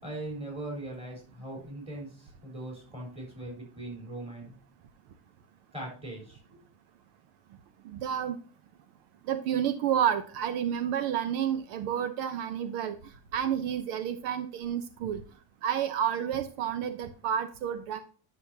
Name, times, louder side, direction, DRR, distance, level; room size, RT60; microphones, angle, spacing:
voice 1, 0.0-4.6 5.7-6.6, right 1 dB, 15° right, -1 dB, 4.0 m, -40 dB
voice 2, 7.9-8.4 9.3-13.0 13.3-15.2 15.6-18.0, right 9 dB, 70° right, 11 dB, 0.9 m, -30 dB
9.9 x 6.4 x 2.7 m, 0.39 s
cardioid pair, 170°, 45 cm